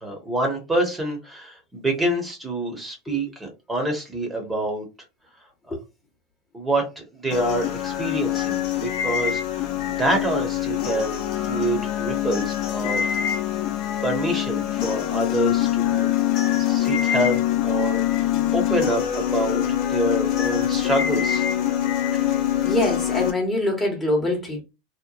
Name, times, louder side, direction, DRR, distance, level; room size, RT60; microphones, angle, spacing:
voice 1, 0.0-4.8 6.5-11.2 11.5-13.2 14.0-16.1 16.6-21.5 22.1-22.3, right 1 dB, 15° right, 1.1 m, -27 dB
sound 1, 7.3-23.3, left 11 dB, 55° left, 0.6 m, -24 dB
voice 2, 22.6-24.6, left 1 dB, 15° left, 1.1 m, -24 dB
2.9 x 2.1 x 2.3 m
supercardioid pair, 110°, 0 cm